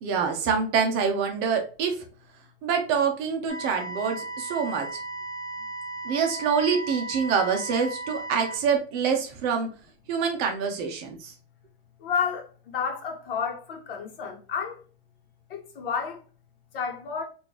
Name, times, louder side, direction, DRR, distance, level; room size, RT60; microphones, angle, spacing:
voice 1, 0.0-1.9 2.6-4.9 6.0-9.7 10.1-11.3, right 6 dB, 30° right, 0.7 m, -26 dB
sound 1, 3.5-8.6, right 2 dB, 30° left, 1.8 m, -36 dB
voice 2, 12.0-14.8 15.5-16.2 16.7-17.2, left 6 dB, 65° left, 1.1 m, -31 dB
3.6 x 2.6 x 2.9 m
hypercardioid pair, 145°, 30 cm